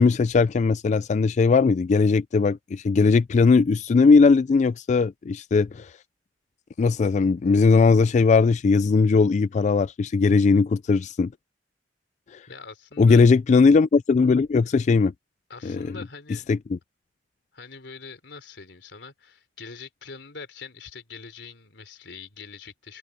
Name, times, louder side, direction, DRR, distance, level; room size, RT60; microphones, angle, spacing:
voice 1, 0.0-5.9 6.8-11.3 12.3-12.5 13.0-15.1 15.6-16.0 16.5-16.8, left 4 dB, 40° left, 0.3 m, -19 dB
voice 2, 12.5-13.2 15.5-16.5 17.5-23.0, left 4 dB, 85° left, 3.4 m, -43 dB
head